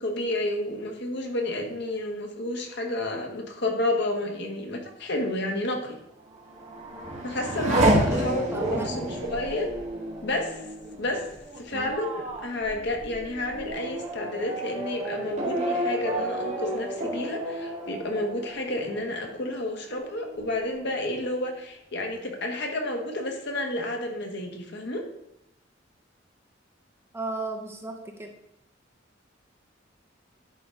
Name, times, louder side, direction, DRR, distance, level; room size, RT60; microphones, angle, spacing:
voice 1, 0.0-6.0 7.2-9.7 10.2-10.6 11.0-11.2 11.6-25.0, left 1 dB, 65° left, 2 dB, 1.3 m, -30 dB
Race car auto racing / Accelerating revving vroom, 6.3-19.5 19.9-20.6, right 1 dB, 40° right, 1.9 m, -30 dB
voice 2, 8.5-9.2 11.7-11.9 27.1-28.3, right 2 dB, 15° right, 2 dB, 0.9 m, -35 dB
10.5 x 3.8 x 3.7 m, 0.83 s
head